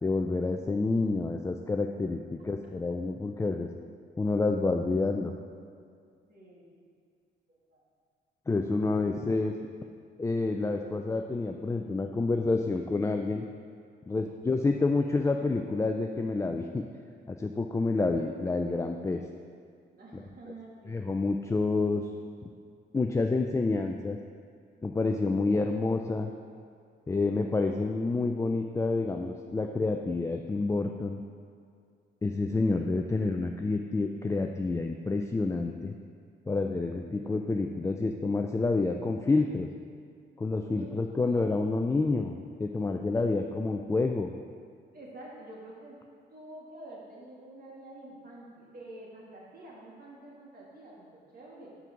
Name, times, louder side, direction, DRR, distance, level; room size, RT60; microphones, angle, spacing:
voice 1, 0.0-3.7 4.2-5.3 8.5-9.5 10.2-13.4 14.1-16.8 17.3-19.2 20.1-20.2 20.9-22.1 22.9-24.2 24.8-26.3 27.1-31.2 32.2-35.9 36.5-39.7 40.4-42.3 42.6-44.3, left 3 dB, 15° left, 3 dB, 0.4 m, -28 dB
voice 2, 6.3-6.7 7.5-7.8 19.9-21.0 40.6-41.6 43.1-43.3 44.9-46.0 46.3-51.8, right 1 dB, 50° right, -4 dB, 2.0 m, -48 dB
5.9 x 5.3 x 5.8 m, 2.3 s
cardioid pair, 90°, 20 cm